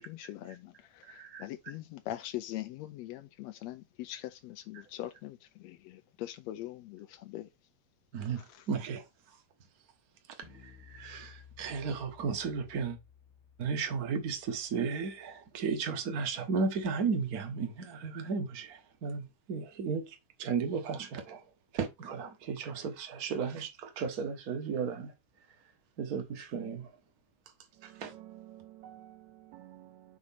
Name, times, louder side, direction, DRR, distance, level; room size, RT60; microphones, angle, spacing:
voice 1, 0.0-7.5 8.3-8.7, left 14 dB, 80° left, 1.5 m, -42 dB
voice 2, 1.0-1.5 8.1-9.0 10.6-13.0 13.6-21.4 21.7-25.1 26.0-26.9 27.8-28.1, right 5 dB, 50° right, 1.1 m, -34 dB
sound 1, 10.4-15.8, left 8 dB, 50° left, 1.2 m, -57 dB
voice 3, 27.8-30.2, right 13 dB, 80° right, 1.8 m, -52 dB
6.1 x 4.0 x 5.9 m
omnidirectional pair, 3.6 m